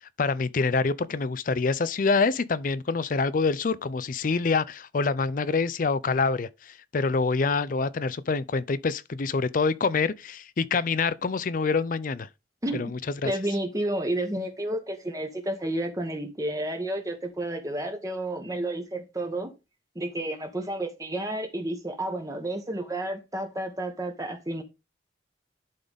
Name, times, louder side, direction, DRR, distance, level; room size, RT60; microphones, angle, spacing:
voice 1, 0.2-12.3 12.7-13.3, left 4 dB, 50° left, 0.5 m, -26 dB
voice 2, 12.6-12.9 13.2-19.5 19.9-24.6, right 1 dB, 20° right, 1.1 m, -31 dB
11.5 x 3.9 x 3.5 m
head